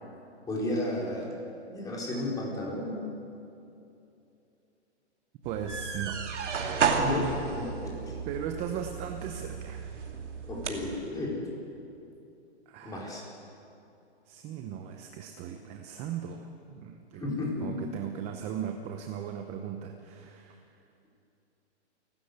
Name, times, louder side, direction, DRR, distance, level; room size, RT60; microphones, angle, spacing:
voice 1, 0.5-1.3 1.7-3.0 7.0-8.2 10.5-11.4 12.8-13.2 17.2-17.8, left 1 dB, 10° left, -3 dB, 4.3 m, -33 dB
voice 2, 5.4-6.3 8.3-10.0 12.7-13.3 14.3-17.3 17.6-20.9, right 8 dB, 20° right, 6 dB, 0.8 m, -38 dB
sound 1, 5.4-11.0, right 5 dB, 80° right, 2.9 m, -32 dB
29.5 x 12.5 x 8.1 m, 2.8 s
hypercardioid pair, 150°, 35 cm